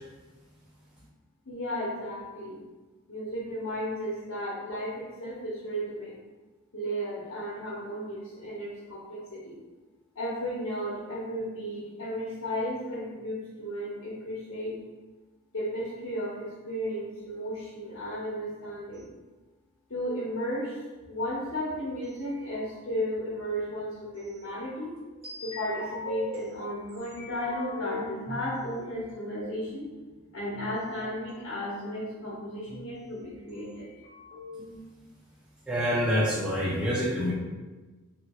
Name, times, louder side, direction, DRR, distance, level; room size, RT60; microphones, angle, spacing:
voice 1, 1.5-2.6 3.1-6.1 6.7-9.6 10.1-14.8 15.5-19.1 19.9-20.8 21.1-24.9 25.4-29.9 30.3-33.9, equal, 65° left, -7 dB, 0.8 m, -34 dB
sound 1, 17.8-18.5 22.2-23.6 24.4-26.3 26.9-28.5 29.4-30.7 31.3-31.4 31.6-32.9 33.5-33.6 33.8-34.8, left 3 dB, 25° right, 1.5 m, -41 dB
voice 2, 35.7-37.3, equal, 5° right, -7 dB, 0.4 m, -26 dB
3.0 x 2.8 x 2.9 m, 1.2 s
head